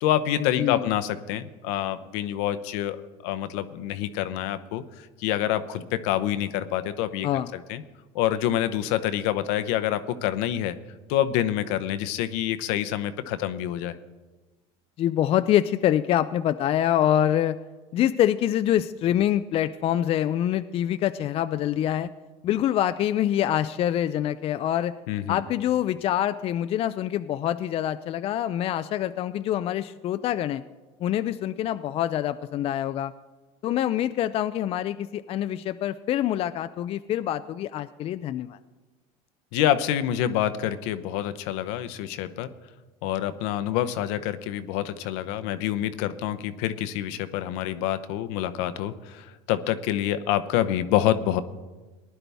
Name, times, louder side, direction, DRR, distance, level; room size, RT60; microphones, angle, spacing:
voice 1, 0.0-3.0 3.2-4.8 5.2-7.8 8.1-10.7 11.1-14.0 25.1-25.4 39.5-42.5 43.0-51.4, left 12 dB, 75° left, 12 dB, 0.8 m, -27 dB
voice 2, 0.6-0.9 7.2-7.5 15.0-17.6 17.9-22.1 22.4-24.9 25.3-30.6 31.0-33.1 33.6-38.6, left 11 dB, 40° left, 11 dB, 0.4 m, -25 dB
19.0 x 11.0 x 3.5 m, 1.2 s
supercardioid pair, 110°, 15 cm